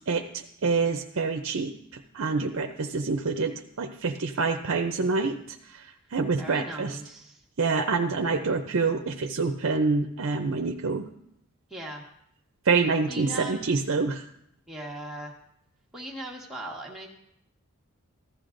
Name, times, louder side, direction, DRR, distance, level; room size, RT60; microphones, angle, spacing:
voice 1, 0.1-7.0 7.6-11.0 12.6-14.3, right 4 dB, 65° right, 5 dB, 0.6 m, -27 dB
voice 2, 6.4-7.4 11.7-12.0 13.1-13.6 14.7-15.3 15.9-17.1, right 1 dB, ahead, -3 dB, 1.5 m, -38 dB
15.0 x 12.5 x 2.6 m, 0.77 s
head